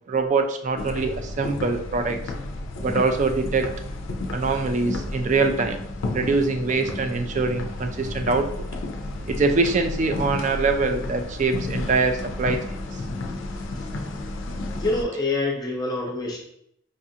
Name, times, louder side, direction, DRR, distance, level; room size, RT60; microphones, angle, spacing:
voice 1, 0.1-2.2 2.8-3.7 4.3-5.8 6.1-8.5 9.3-13.0, right 3 dB, 40° right, 6 dB, 0.3 m, -23 dB
sound 1, 0.8-15.0, left 2 dB, 75° left, 0.4 m, -32 dB
voice 2, 14.7-16.4, left 2 dB, 20° left, -2 dB, 0.6 m, -26 dB
4.9 x 2.4 x 2.7 m, 0.72 s
head